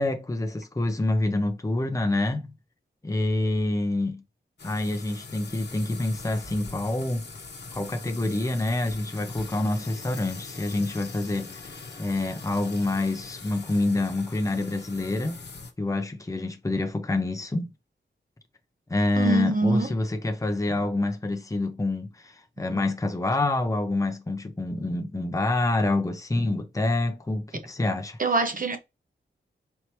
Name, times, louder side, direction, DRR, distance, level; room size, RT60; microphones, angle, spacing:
voice 1, 0.0-2.5 3.0-4.2 4.6-7.2 7.7-15.4 15.8-17.7 18.9-28.2, left 2 dB, 15° left, 0.7 m, -27 dB
sound 1, 4.6-15.7, left 4 dB, 60° left, 1.0 m, -42 dB
voice 2, 19.2-19.9 28.2-28.8, right 3 dB, 45° right, 0.9 m, -24 dB
4.5 x 2.8 x 3.2 m
wide cardioid pair, 75°, 20 cm